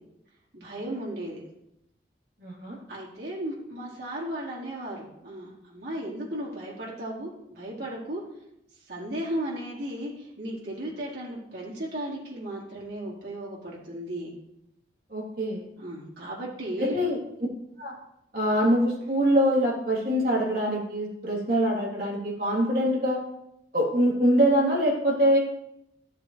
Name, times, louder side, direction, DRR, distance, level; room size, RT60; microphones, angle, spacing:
voice 1, 0.5-1.4 2.9-8.2 8.9-14.3 15.8-17.0, right 1 dB, 75° right, -6 dB, 4.1 m, -35 dB
voice 2, 2.4-2.8 15.1-15.6 16.8-17.2 17.8-17.9 18.3-23.2 23.7-25.4, equal, 50° right, -4 dB, 3.3 m, -24 dB
14.0 x 7.4 x 3.3 m, 0.83 s
head